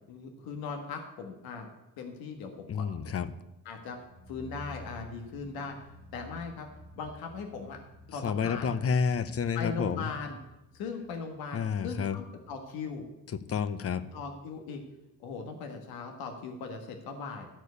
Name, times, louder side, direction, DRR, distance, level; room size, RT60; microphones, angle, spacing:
voice 1, 0.1-1.7 2.0-2.9 3.6-4.0 4.3-5.8 6.1-6.7 6.9-7.8 8.1-8.7 9.5-10.4 10.7-13.0 14.1-14.8 15.2-17.5, left 5 dB, 90° left, 4 dB, 1.6 m, -39 dB
voice 2, 2.7-3.3 8.1-10.1 11.5-12.2 13.3-14.1, left 6 dB, 40° left, 12 dB, 0.8 m, -30 dB
sound 1, 3.8-14.6 14.8-14.9, left 2 dB, 15° right, 1.3 m, -53 dB
13.5 x 4.5 x 8.2 m, 0.93 s
cardioid pair, 120°, 35 cm